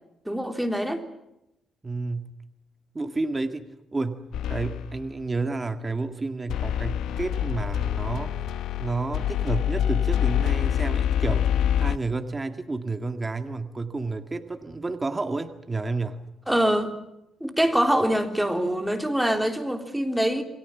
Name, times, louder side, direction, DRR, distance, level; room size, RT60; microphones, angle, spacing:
voice 1, 0.3-1.1 16.5-16.9 17.4-20.4, equal, 5° right, 6 dB, 3.4 m, -24 dB
voice 2, 1.8-2.4 2.9-8.4 8.8-16.3, right 3 dB, 20° right, 7 dB, 1.9 m, -31 dB
sound 1, 4.3-5.1 6.5-12.0, left 10 dB, 90° left, 0.9 m, -26 dB
28.5 x 23.0 x 7.2 m, 0.87 s
cardioid pair, 125°, 0 cm